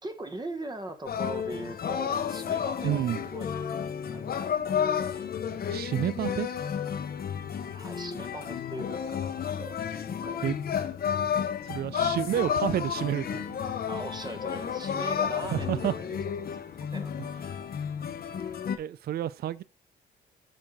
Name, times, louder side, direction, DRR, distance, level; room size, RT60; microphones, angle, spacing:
voice 1, 0.0-4.9 7.7-9.8 10.2-10.5 13.9-17.2, right 2 dB, 20° right, 1.2 m, -41 dB
sound 1, 1.1-18.8, left 8 dB, 50° left, 0.9 m, -32 dB
voice 2, 2.8-3.2 5.7-6.5 10.4-10.5 11.7-13.6 15.5-15.9 18.8-19.6, right 11 dB, 50° right, 0.4 m, -29 dB
7.3 x 4.5 x 3.7 m
cardioid pair, 90°, 20 cm